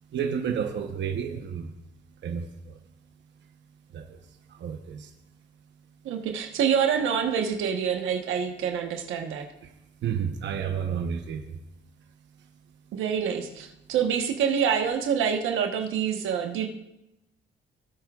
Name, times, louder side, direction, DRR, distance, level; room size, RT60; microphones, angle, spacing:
voice 1, 0.1-1.7 2.2-2.5 3.9-4.0 4.6-5.1 10.0-11.4, right 7 dB, 65° right, 5 dB, 0.9 m, -30 dB
voice 2, 6.0-9.5 12.9-16.7, right 7 dB, 85° right, 4 dB, 1.1 m, -26 dB
18.0 x 8.3 x 2.4 m, 0.89 s
cardioid pair, 90°, 20 cm